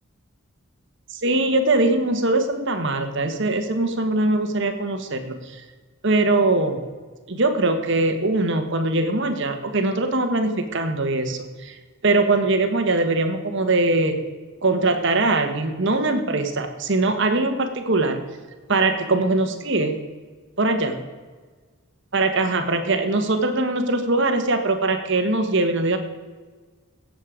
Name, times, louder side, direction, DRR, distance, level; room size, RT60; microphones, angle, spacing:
voice 1, 1.2-5.6 6.0-6.8 7.3-11.8 12.0-14.2 14.6-18.2 18.7-20.0 20.6-21.0 22.1-26.0, right 2 dB, 55° right, 6 dB, 1.4 m, -21 dB
17.0 x 7.6 x 5.1 m, 1.4 s
head